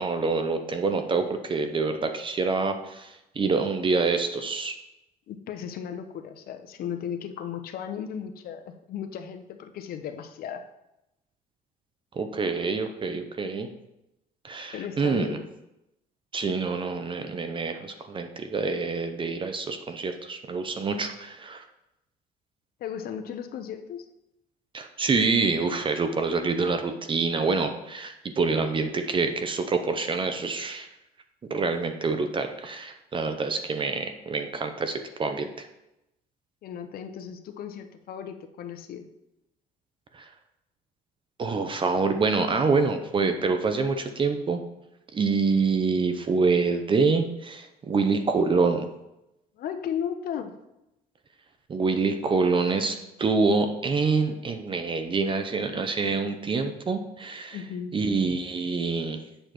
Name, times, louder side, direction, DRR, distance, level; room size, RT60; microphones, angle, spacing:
voice 1, 0.0-4.8 12.1-13.7 14.4-15.4 16.3-21.6 24.7-30.9 31.5-35.7 40.1-40.2 41.4-44.6 45.1-48.9 51.7-57.6 57.9-59.2, right 4 dB, 30° right, 7 dB, 0.7 m, -26 dB
voice 2, 5.3-10.6 14.7-15.4 22.8-24.1 36.6-39.1 49.6-50.5 57.5-58.0, left 8 dB, 60° left, 7 dB, 0.8 m, -35 dB
7.9 x 6.6 x 3.1 m, 0.89 s
cardioid pair, 110°, 17 cm